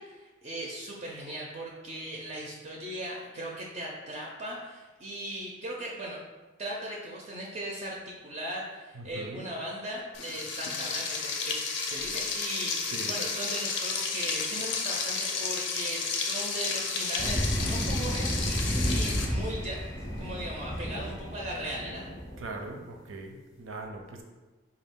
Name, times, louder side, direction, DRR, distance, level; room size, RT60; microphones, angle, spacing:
voice 1, 0.0-6.2 6.6-19.8 20.2-22.1, right 1 dB, 35° right, -2 dB, 0.4 m, -38 dB
voice 2, 8.9-9.4 12.8-13.1 22.4-24.2, right 2 dB, 85° right, 3 dB, 0.5 m, -40 dB
Frying (food), 10.1-19.3, left 5 dB, 65° left, 0.5 m, -32 dB
sound 1, 17.2-22.5, equal, 15° left, 0.5 m, -32 dB
4.0 x 2.3 x 3.5 m, 1.2 s
head